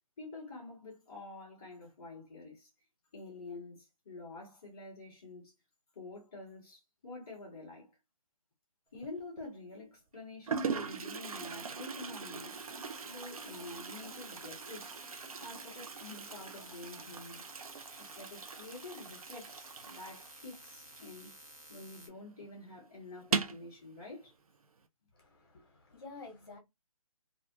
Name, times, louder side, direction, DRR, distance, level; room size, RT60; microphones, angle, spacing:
voice 1, 0.2-2.7 3.1-5.5 5.9-7.9 8.9-12.6 13.0-15.0 15.4-17.4 18.0-21.4 21.7-24.3, left 2 dB, 10° left, 0.5 m, -48 dB
Toilet flush, 8.9-9.4 10.1-10.2 10.5-21.8 22.0-22.1 22.4-22.5 23.2-23.7, right 5 dB, 75° right, 0.5 m, -40 dB
sound 1, 12.5-22.1, right 2 dB, 30° right, 0.8 m, -54 dB
voice 2, 25.1-26.6, left 3 dB, 40° left, 0.8 m, -50 dB
2.4 x 2.3 x 2.6 m
hypercardioid pair, 175°, 19 cm